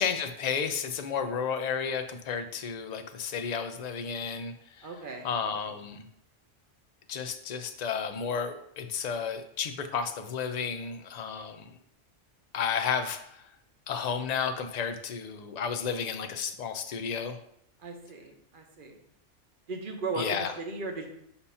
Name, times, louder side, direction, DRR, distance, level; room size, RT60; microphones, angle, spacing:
voice 1, 0.0-4.9 5.2-6.1 7.1-11.8 12.5-13.4 13.9-17.4 20.2-20.5, left 6 dB, 50° left, 8 dB, 0.5 m, -32 dB
voice 2, 4.8-5.3 17.8-19.0 19.7-21.1, right 3 dB, 45° right, 3 dB, 1.0 m, -37 dB
7.0 x 2.8 x 5.5 m, 0.74 s
omnidirectional pair, 1.2 m